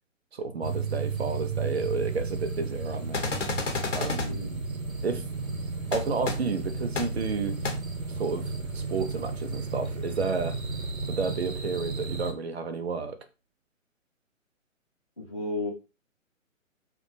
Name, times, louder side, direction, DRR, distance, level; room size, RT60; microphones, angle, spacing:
voice 1, 0.3-3.3 3.9-4.4 5.0-5.3 5.9-7.6 8.1-10.6 11.1-13.2, right 4 dB, 50° right, 0.5 m, -31 dB
sound 1, 0.6-12.3, right 4 dB, 85° right, 0.8 m, -33 dB
sound 2, 3.1-4.3 5.9-6.0 6.3-6.4 7.0-7.1 7.6-7.7, left 4 dB, 65° left, 0.8 m, -30 dB
voice 2, 4.3-4.6 15.2-15.7, left 2 dB, 25° left, 0.4 m, -33 dB
2.3 x 2.2 x 2.7 m
figure-of-eight pair, 135°, 40 cm